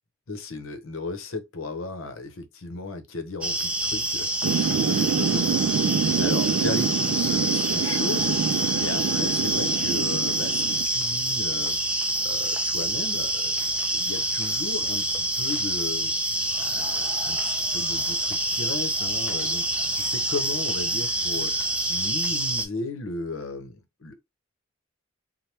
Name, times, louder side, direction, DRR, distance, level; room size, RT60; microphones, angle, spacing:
voice 1, 0.3-11.8 12.2-13.6 13.9-21.5 21.9-24.2, left 3 dB, 75° left, 0.8 m, -35 dB
sound 1, 3.4-22.7, right 1 dB, 5° right, 0.4 m, -26 dB
Thunder / Rain, 4.4-10.9, right 6 dB, 75° right, 0.3 m, -26 dB
3.3 x 2.1 x 2.8 m
head